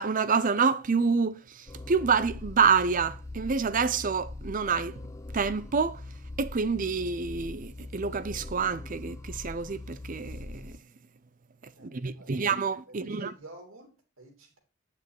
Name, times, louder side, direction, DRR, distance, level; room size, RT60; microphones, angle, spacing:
voice 1, 0.0-4.9 5.3-6.0 6.4-10.7 11.8-13.3, right 5 dB, 40° right, 0.5 m, -27 dB
sound 1, 1.7-10.8, left 2 dB, 15° left, 0.3 m, -42 dB
voice 2, 11.7-12.5 12.9-14.6, right 2 dB, 70° right, 3.1 m, -50 dB
9.3 x 6.1 x 4.7 m
head